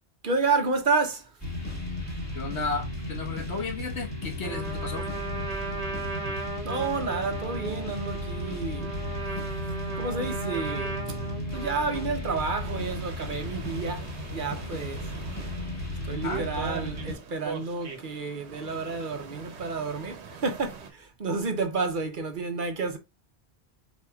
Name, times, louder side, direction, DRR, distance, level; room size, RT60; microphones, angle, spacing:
voice 1, 0.2-1.2 6.6-8.9 10.0-10.9 11.3-15.0 16.1-23.0, right 4 dB, 50° right, 0.9 m, -30 dB
sound 1, 1.4-17.1, left 1 dB, 15° left, 1.3 m, -35 dB
voice 2, 2.3-5.1 16.2-16.4, left 4 dB, 75° left, 1.5 m, -33 dB
Trumpet, 4.4-12.5, right 3 dB, 35° right, 1.4 m, -36 dB
sound 2, 12.6-20.9, right 7 dB, 80° right, 1.1 m, -42 dB
4.6 x 4.1 x 2.3 m
omnidirectional pair, 1.1 m